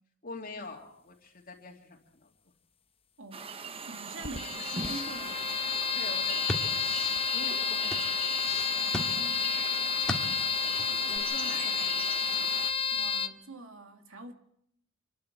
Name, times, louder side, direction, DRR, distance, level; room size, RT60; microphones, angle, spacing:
voice 1, 0.2-2.3 6.0-8.1 10.9-12.1, left 3 dB, 45° left, 2.8 m, -45 dB
sound 1, 3.3-12.7, right 5 dB, 30° right, 1.0 m, -40 dB
voice 2, 3.9-5.5 8.8-10.5 12.9-14.3, right 2 dB, 70° right, 2.4 m, -45 dB
sound 2, 4.2-13.3, left 6 dB, 30° left, 0.9 m, -30 dB
sound 3, 6.1-11.2, left 1 dB, 5° left, 2.1 m, -39 dB
26.0 x 12.0 x 9.4 m
head